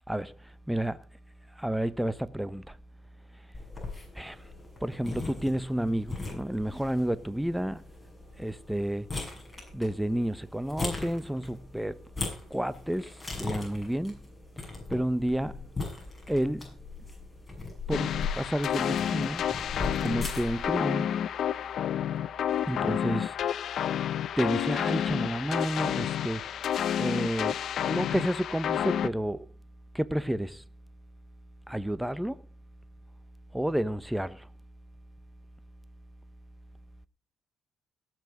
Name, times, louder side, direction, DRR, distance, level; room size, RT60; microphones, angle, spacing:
voice 1, 0.7-1.0 1.6-2.8 4.1-4.5 4.8-7.8 8.4-9.1 9.7-12.0 12.5-14.2 14.9-15.6 16.3-16.8 17.9-19.4 20.0-21.1 22.7-23.4 24.4-26.4 27.0-29.5 29.9-30.6 31.7-32.4 33.5-34.5, right 1 dB, 5° right, 0.9 m, -30 dB
sound 1, 3.5-20.7, left 3 dB, 20° left, 6.6 m, -39 dB
sound 2, 17.9-29.1, left 9 dB, 70° left, 0.6 m, -30 dB
18.0 x 6.2 x 5.1 m
cardioid pair, 90°, 0 cm